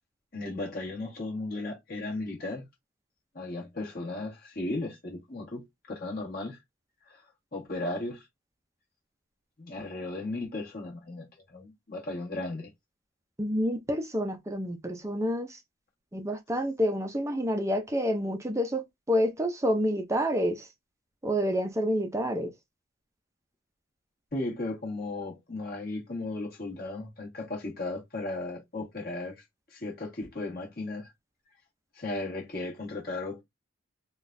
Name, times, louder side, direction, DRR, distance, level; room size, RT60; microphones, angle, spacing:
voice 1, 0.3-2.6 3.3-6.6 7.0-7.2 7.5-8.3 9.6-12.7 24.3-29.4 29.7-31.1 31.9-33.4, left 2 dB, 45° left, 1.6 m, -36 dB
voice 2, 13.4-15.6 16.1-20.7 21.2-22.5, equal, 15° right, 0.5 m, -28 dB
3.7 x 2.3 x 2.6 m
head